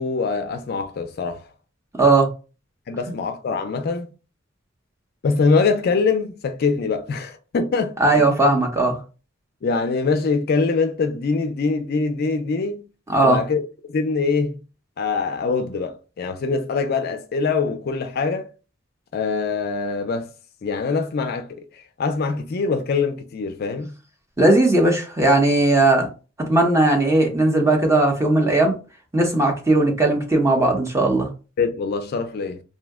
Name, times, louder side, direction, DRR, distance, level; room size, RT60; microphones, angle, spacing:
voice 1, 0.0-1.4 2.9-4.1 5.2-8.3 9.6-12.9 13.2-13.6 13.9-14.6 15.0-18.5 19.1-20.3 20.6-21.7 22.0-23.9 31.6-32.6, left 4 dB, 50° left, 0.4 m, -23 dB
voice 2, 2.0-2.3 8.0-9.0 13.1-13.4 24.4-26.1 26.5-28.7 29.1-31.3, right 2 dB, 15° right, 0.7 m, -17 dB
2.7 x 2.1 x 3.5 m
head